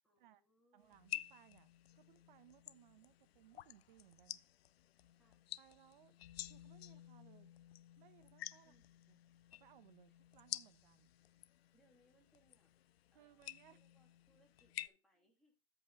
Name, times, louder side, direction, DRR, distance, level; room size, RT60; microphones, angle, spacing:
voice 1, 0.0-1.1 5.1-5.5 8.6-8.9 11.7-12.7 13.1-15.5, equal, ahead, 2.2 m, -75 dB
voice 2, 0.7-4.4 5.6-6.1 6.4-7.5 8.0-8.7 9.1-9.2 9.5-11.1 13.1-13.8, right 12 dB, 50° right, 1.2 m, -65 dB
sound 1, 0.9-14.9, left 13 dB, 70° left, 0.6 m, -51 dB
13.5 x 5.1 x 3.7 m
hypercardioid pair, 160°, 32 cm